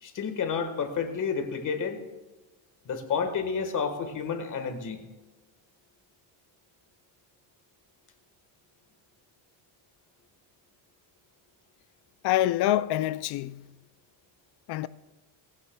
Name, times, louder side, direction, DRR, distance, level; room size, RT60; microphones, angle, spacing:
voice 1, 0.0-2.0 2.8-5.0, left 6 dB, 40° left, 1.5 m, -30 dB
voice 2, 12.2-13.7 14.7-14.9, left 14 dB, 55° left, 0.5 m, -26 dB
19.0 x 15.0 x 2.3 m
cardioid pair, 145°, 47 cm